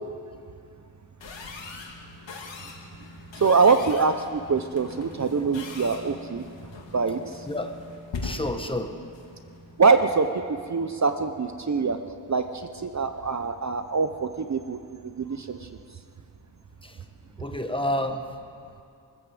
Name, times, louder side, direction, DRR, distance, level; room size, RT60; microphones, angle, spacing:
sound 1, 1.2-10.3, left 3 dB, 80° left, 2.3 m, -41 dB
voice 1, 3.4-6.4 6.9-7.5 9.8-12.0 12.3-15.7, right 4 dB, 40° right, 8 dB, 0.7 m, -24 dB
voice 2, 7.5-7.8 8.2-8.9 16.8-16.9 17.4-18.3, left 1 dB, 10° left, 6 dB, 1.2 m, -29 dB
23.5 x 14.0 x 7.8 m, 2.4 s
wide cardioid pair, 150°, 44 cm